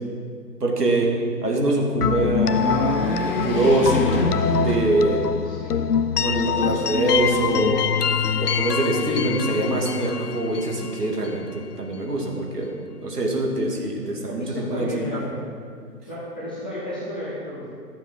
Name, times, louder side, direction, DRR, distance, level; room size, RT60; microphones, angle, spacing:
voice 1, 0.6-1.1 1.4-4.1 4.5-5.3 6.2-7.9 8.4-15.2, right 2 dB, 75° right, -1 dB, 2.4 m, -24 dB
sound 1, 1.9-5.5 6.0-6.1 7.2-7.9, left 1 dB, 35° left, 1.8 m, -28 dB
sound 2, 2.0-11.8, left 7 dB, 70° left, 0.6 m, -25 dB
voice 2, 5.4-5.8 6.5-6.7 13.9-15.5 16.1-17.7, left 1 dB, 5° left, -12 dB, 0.5 m, -33 dB
12.0 x 7.0 x 6.1 m, 2.1 s
figure-of-eight pair, 135°, 48 cm